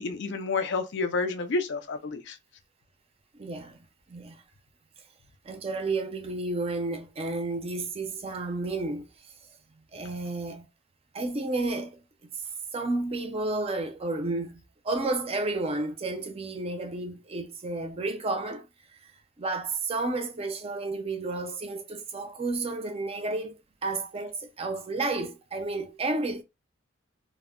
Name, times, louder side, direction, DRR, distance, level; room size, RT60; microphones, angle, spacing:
voice 1, 0.0-2.4, left 3 dB, 60° left, 0.5 m, -29 dB
voice 2, 3.3-3.8 4.1-4.4 5.4-9.3 9.9-10.7 11.1-12.0 12.3-12.4 12.7-18.7 19.0-19.1 19.4-23.5 23.8-26.4, right 2 dB, 30° right, 0.4 m, -31 dB
2.1 x 2.0 x 3.6 m
head